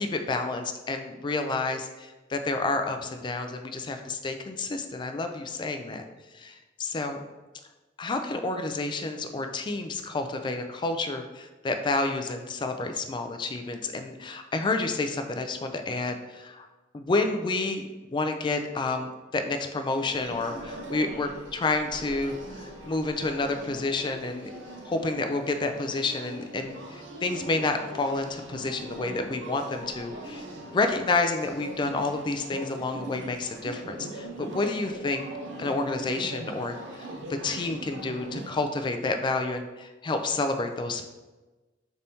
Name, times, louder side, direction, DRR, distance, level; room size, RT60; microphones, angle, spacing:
voice 1, 0.0-6.0 6.3-7.2 8.0-16.7 16.9-24.5 24.8-30.4 30.7-35.2 35.6-37.1 37.4-41.1, left 3 dB, 25° left, 7 dB, 0.3 m, -29 dB
sound 1, 20.0-38.5, right 1 dB, 85° right, 0.6 m, -41 dB
4.0 x 3.4 x 2.7 m, 1.2 s
head